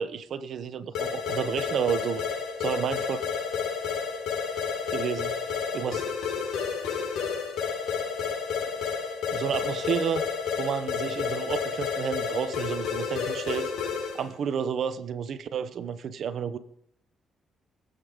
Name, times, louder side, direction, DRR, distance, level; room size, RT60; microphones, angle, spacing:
voice 1, 0.0-2.2 2.6-3.2 4.9-5.3 5.7-6.0 9.3-10.3 10.6-13.7 14.1-16.6, right 7 dB, 65° right, 1.0 m, -31 dB
sound 1, 0.9-14.3, left 6 dB, 80° left, 4.7 m, -31 dB
22.5 x 8.2 x 5.2 m
cardioid pair, 90°, 0 cm